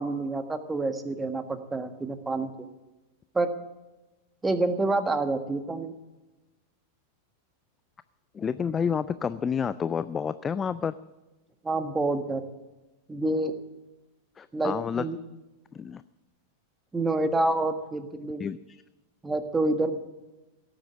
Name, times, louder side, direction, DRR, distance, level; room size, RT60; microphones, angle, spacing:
voice 1, 0.0-2.7 3.3-3.5 4.4-5.9 11.6-12.4 13.1-13.5 14.5-15.2 16.9-18.4 19.2-19.9, right 2 dB, 10° right, 10 dB, 1.5 m, -27 dB
voice 2, 8.3-10.9 14.4-15.0 15.7-16.0 18.4-18.8, left 7 dB, 20° left, 15 dB, 0.4 m, -29 dB
17.5 x 8.9 x 8.3 m, 1.1 s
figure-of-eight pair, 90°, 0 cm